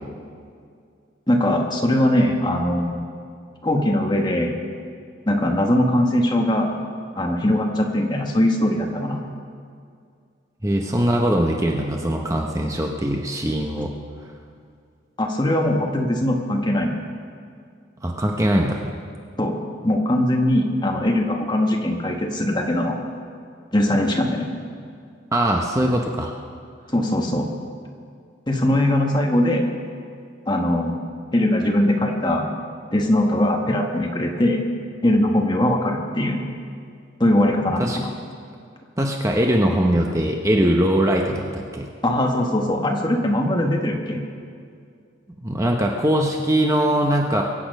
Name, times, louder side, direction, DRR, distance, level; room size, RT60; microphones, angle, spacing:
voice 1, 1.3-3.0 3.6-4.5 5.3-6.8 7.1-9.2 15.2-16.9 19.4-19.6 19.8-23.0 23.7-24.5 26.9-27.5 28.5-29.7 30.5-31.0 31.3-32.5 32.9-34.6 35.0-36.4 37.2-38.1 42.0-44.2, left 1 dB, 20° left, 1 dB, 1.3 m, -21 dB
voice 2, 10.6-13.9 18.0-18.8 25.3-26.3 37.8-38.0 39.0-41.9 45.4-47.4, right 1 dB, 15° right, 1 dB, 0.8 m, -21 dB
23.0 x 8.6 x 5.3 m, 2.2 s
head